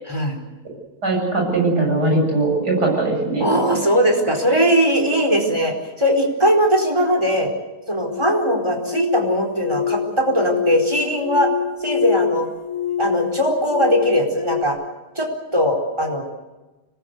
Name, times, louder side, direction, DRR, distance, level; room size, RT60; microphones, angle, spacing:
voice 1, 0.1-0.4 3.4-7.5 7.9-11.5 11.8-12.5 13.0-14.8 15.2-16.2, equal, 15° right, 3 dB, 4.5 m, -19 dB
voice 2, 1.0-3.5, right 2 dB, 85° right, 0 dB, 8.7 m, -20 dB
sound 1, 8.0-14.6, left 8 dB, 65° left, 1.7 m, -26 dB
25.5 x 20.0 x 8.1 m, 1.1 s
omnidirectional pair, 1.7 m